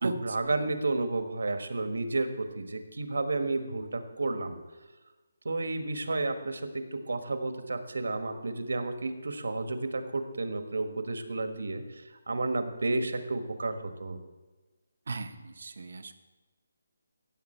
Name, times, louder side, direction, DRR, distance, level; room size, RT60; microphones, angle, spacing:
voice 1, 0.0-4.6 5.4-14.2, right 2 dB, 80° right, 8 dB, 1.4 m, -32 dB
voice 2, 15.1-16.1, right 4 dB, 55° right, 9 dB, 0.9 m, -36 dB
16.5 x 7.6 x 4.5 m, 1.2 s
hypercardioid pair, 175°, 0 cm